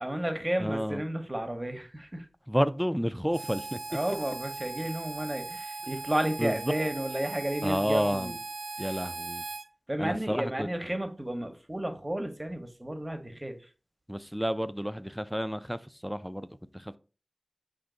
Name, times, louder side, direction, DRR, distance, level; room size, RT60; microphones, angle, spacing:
voice 1, 0.0-2.3 3.9-8.4 8.8-9.0 9.9-13.7, right 1 dB, 25° right, 0.8 m, -32 dB
voice 2, 0.6-1.0 2.5-3.8 6.4-6.6 7.6-8.4 8.8-9.4 10.0-10.7 14.1-17.0, equal, 5° right, 0.3 m, -30 dB
Harmonica, 3.3-9.7, right 3 dB, 90° right, 0.4 m, -39 dB
5.1 x 2.6 x 3.7 m
wide cardioid pair, 55°, 0 cm